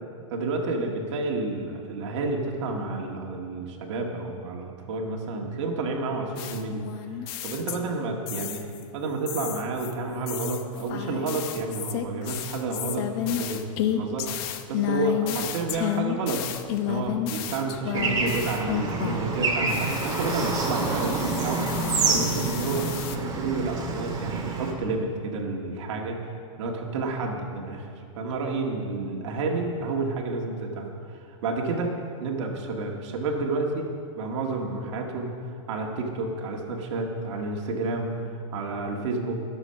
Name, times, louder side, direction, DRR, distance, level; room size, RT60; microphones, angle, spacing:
voice 1, 0.3-6.8 7.4-8.7 8.9-14.3 14.7-16.4 16.8-22.9 23.3-26.2 26.6-30.9 31.1-31.9 32.2-33.9 34.2-35.3 35.7-38.1 38.5-39.4, right 3 dB, 60° right, 1 dB, 2.0 m, -30 dB
sound 1, 6.4-8.0 8.3-8.8 9.3-19.4 19.7-23.2, left 11 dB, 45° left, 0.9 m, -32 dB
Bird / Traffic noise roadway noise, 17.9-24.7, right 3 dB, 20° right, 2.0 m, -28 dB
21.0 x 7.2 x 5.8 m, 2.5 s
hypercardioid pair, 145°, 17 cm